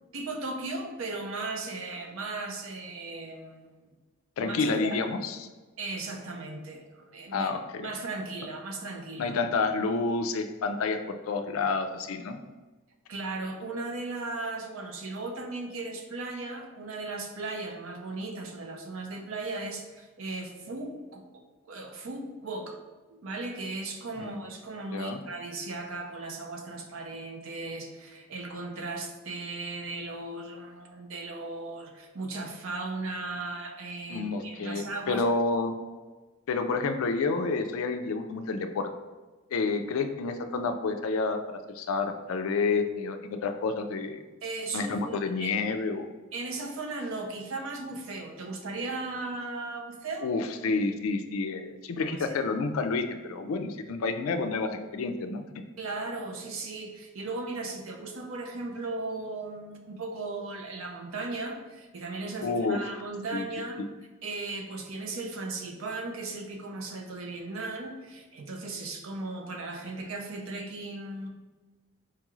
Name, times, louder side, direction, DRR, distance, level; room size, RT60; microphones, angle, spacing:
voice 1, 0.1-3.9 4.4-5.0 5.8-7.5 7.8-9.4 13.1-21.4 21.7-22.8 23.1-35.2 44.4-45.6 46.3-50.3 52.2-52.4 55.8-63.8 64.2-71.3, right 3 dB, 65° right, 3 dB, 0.5 m, -37 dB
voice 2, 4.4-5.5 7.3-7.8 9.2-12.4 24.2-24.4 24.9-25.2 34.1-35.7 36.5-38.9 39.5-41.4 41.7-44.2 44.7-46.1 50.2-55.4 62.4-62.8 63.3-63.4, left 4 dB, 70° left, 7 dB, 0.4 m, -29 dB
4.5 x 2.4 x 3.0 m, 1.3 s
head